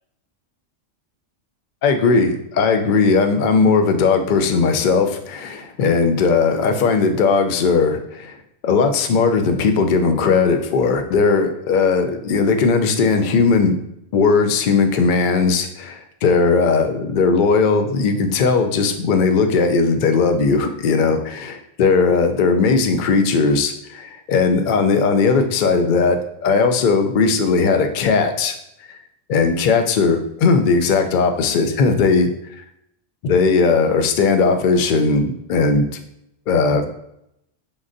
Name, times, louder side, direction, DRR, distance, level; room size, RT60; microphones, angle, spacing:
voice 1, 1.8-8.3 8.6-13.8 14.1-28.5 29.3-32.3 33.2-35.9 36.5-36.9, left 4 dB, 60° left, 6 dB, 0.5 m, -18 dB
7.0 x 2.5 x 2.5 m, 0.78 s
omnidirectional pair, 1.2 m